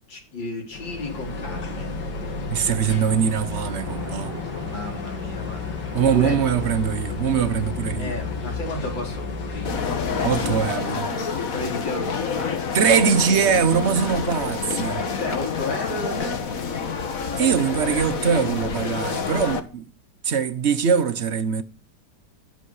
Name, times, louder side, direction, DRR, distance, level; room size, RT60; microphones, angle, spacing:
voice 1, 0.1-1.9 4.6-5.7 6.0-6.4 7.9-10.4 11.5-12.6 15.1-16.4, left 2 dB, 90° left, 4.5 m, -33 dB
sound 1, 0.7-10.8, left 4 dB, 70° left, 2.7 m, -32 dB
voice 2, 2.5-4.3 5.9-8.2 10.2-11.1 12.7-15.1 17.4-19.9 20.2-21.6, right 7 dB, 45° right, 1.1 m, -22 dB
Splash splatter, 3.4-7.5, right 2 dB, 80° right, 7.5 m, -40 dB
sound 2, 9.6-19.6, left 5 dB, 50° left, 1.8 m, -28 dB
24.5 x 8.4 x 4.9 m
omnidirectional pair, 2.0 m